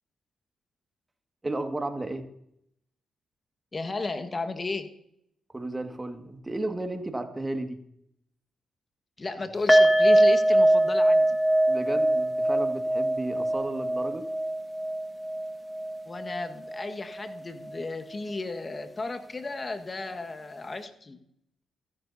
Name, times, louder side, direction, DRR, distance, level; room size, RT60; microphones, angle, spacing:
voice 1, 1.4-2.3 5.5-7.8 11.7-14.3, right 2 dB, 25° right, 6 dB, 2.0 m, -33 dB
voice 2, 3.7-4.9 9.2-11.4 16.0-21.2, left 3 dB, 35° left, 7 dB, 1.6 m, -34 dB
sound 1, 9.7-16.9 17.2-17.3 17.7-17.8, right 1 dB, 10° left, 1.9 m, -23 dB
28.5 x 11.5 x 2.8 m, 0.74 s
hypercardioid pair, 40°, 0 cm